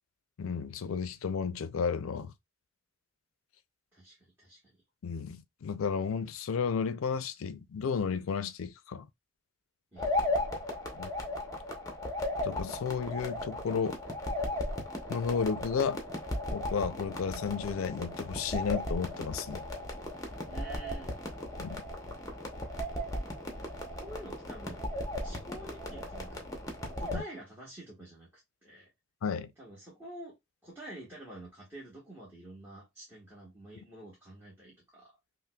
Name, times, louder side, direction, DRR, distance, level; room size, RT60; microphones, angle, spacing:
voice 1, 0.4-2.3 5.0-9.1 10.9-11.1 12.4-14.0 15.1-16.0 16.5-19.6 21.6-21.8 27.1-27.2 29.2-29.5, left 6 dB, 85° left, 0.4 m, -33 dB
voice 2, 3.9-4.6 9.9-10.6 20.5-21.3 23.6-24.9 25.2-26.5 27.0-28.9 29.6-30.4 30.6-35.1, right 1 dB, 10° right, 1.2 m, -48 dB
sound 1, 10.0-27.2, left 1 dB, 15° left, 0.7 m, -36 dB
5.5 x 2.1 x 2.2 m
head